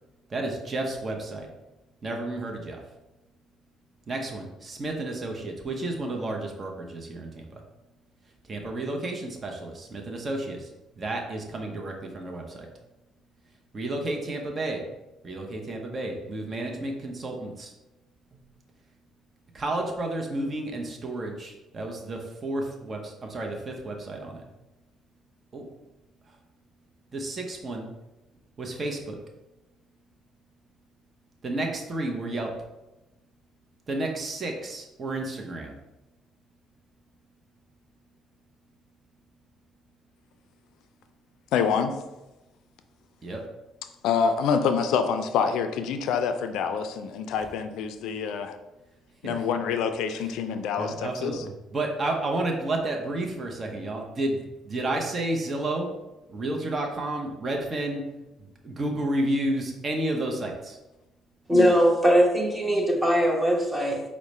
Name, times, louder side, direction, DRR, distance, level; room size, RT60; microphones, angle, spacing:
voice 1, 0.3-1.5 2.0-2.8 4.1-7.6 8.5-10.7 11.0-12.7 13.7-14.9 15.2-17.7 18.3-18.4 19.5-24.4 25.5-25.7 27.1-27.9 28.6-29.2 31.4-32.5 33.9-35.8 43.2-43.4 49.2-49.5 50.2-50.3 50.8-55.9 56.3-58.0 58.4-60.8, right 2 dB, 35° right, 2 dB, 0.7 m, -31 dB
voice 2, 41.5-42.0 44.0-48.6 49.2-51.4 61.6-61.7, left 6 dB, 80° left, 8 dB, 0.3 m, -26 dB
voice 3, 61.5-64.0, equal, 10° right, 0 dB, 0.9 m, -21 dB
4.6 x 2.1 x 4.1 m, 1.0 s
cardioid pair, 85°, 0 cm